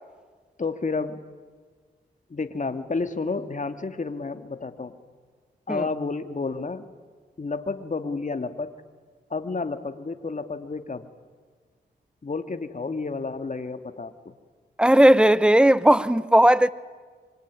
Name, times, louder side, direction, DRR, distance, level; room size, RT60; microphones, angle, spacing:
voice 1, 0.6-1.2 2.3-4.9 5.7-6.9 7.4-8.7 9.3-11.1 12.2-14.3, left 4 dB, 45° left, 2.2 m, -30 dB
voice 2, 14.8-16.7, right 1 dB, 5° right, 1.1 m, -16 dB
25.5 x 24.5 x 9.7 m
cardioid pair, 50°, 18 cm